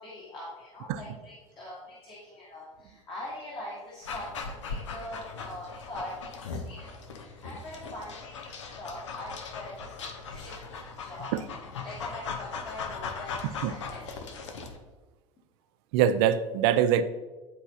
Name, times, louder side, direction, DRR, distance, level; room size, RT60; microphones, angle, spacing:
voice 1, 0.0-14.2, left 1 dB, 30° left, -6 dB, 1.5 m, -43 dB
Dog, 4.0-14.8, left 5 dB, 65° left, 0.8 m, -39 dB
voice 2, 13.4-13.7 15.9-17.0, right 9 dB, 50° right, 11 dB, 0.5 m, -24 dB
10.0 x 4.4 x 2.8 m, 1.3 s
figure-of-eight pair, 70°, 16 cm